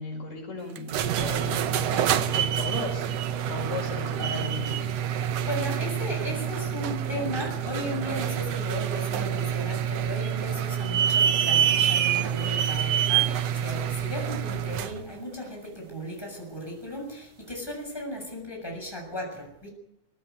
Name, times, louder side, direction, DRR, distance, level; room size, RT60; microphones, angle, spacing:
voice 1, 0.0-3.1 3.5-4.9, left 3 dB, 65° left, 2 dB, 6.4 m, -36 dB
sound 1, 0.8-15.0, right 9 dB, 65° right, 1.8 m, -27 dB
voice 2, 5.4-19.7, equal, 5° left, 1 dB, 6.8 m, -36 dB
20.0 x 15.5 x 9.4 m, 0.84 s
omnidirectional pair, 3.5 m